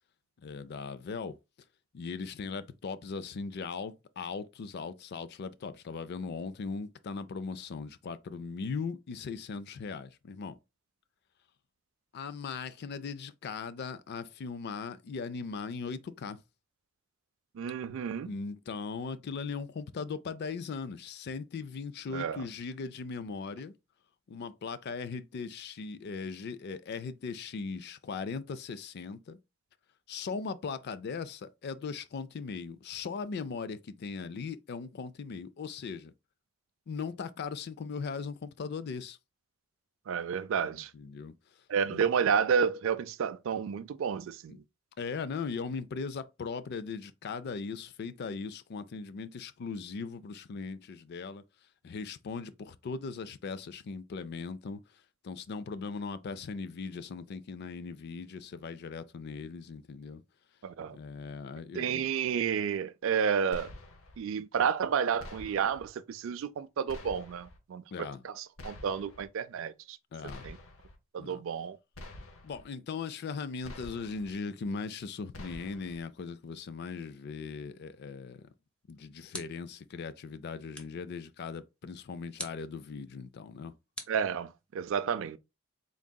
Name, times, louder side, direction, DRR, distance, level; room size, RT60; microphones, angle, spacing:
voice 1, 0.4-1.4 1.9-10.5 12.1-16.4 18.3-23.7 24.3-29.4 30.1-36.1 36.9-39.2 40.7-41.3 41.9-42.0 44.5-44.6 45.0-51.4 51.8-54.8 55.2-60.2 60.9-62.1 67.9-68.2 70.1-70.5 71.2-71.4 72.4-78.5 78.9-83.7, left 5 dB, 50° left, 0.4 m, -39 dB
voice 2, 17.6-18.3 22.1-22.4 40.1-40.9 41.7-44.6 60.6-61.0 61.7-63.7 64.2-70.0 70.4-70.6 71.1-71.8 84.1-85.4, right 7 dB, 65° right, 0.3 m, -31 dB
sound 1, 63.5-64.2 65.2-65.9 66.9-67.6 68.6-69.3 70.3-71.0 71.9-72.6 73.6-74.3 75.3-76.0, left 1 dB, 75° left, 0.9 m, -47 dB
sound 2, 78.6-79.8 80.7-81.1 82.4-82.7 83.9-84.8, equal, 5° left, 0.6 m, -45 dB
3.9 x 3.6 x 2.2 m
head